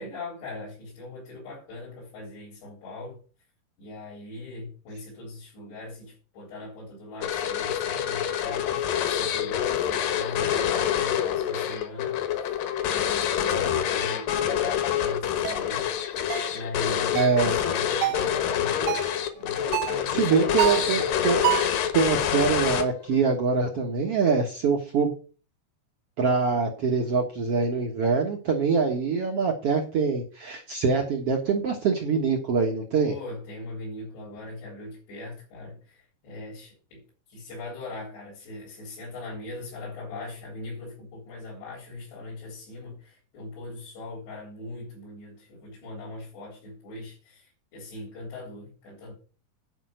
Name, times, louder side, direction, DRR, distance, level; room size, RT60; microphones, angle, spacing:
voice 1, 0.0-3.2 3.8-12.5 12.8-15.9 16.1-19.0 19.3-21.0 33.0-37.0 37.3-49.1, left 2 dB, 85° left, 6.0 m, -40 dB
sound 1, 7.2-23.2, left 10 dB, 65° left, 2.5 m, -27 dB
sound 2, 15.4-15.6 16.3-16.6 17.2-17.4 18.0-18.3 18.9-19.2 19.7-20.0 20.6-20.9 21.4-21.8, right 15 dB, 90° right, 3.1 m, -27 dB
voice 2, 17.1-17.6 20.1-21.4 21.9-25.1 26.2-33.1, right 5 dB, 65° right, 1.4 m, -24 dB
11.0 x 5.3 x 7.7 m
omnidirectional pair, 4.8 m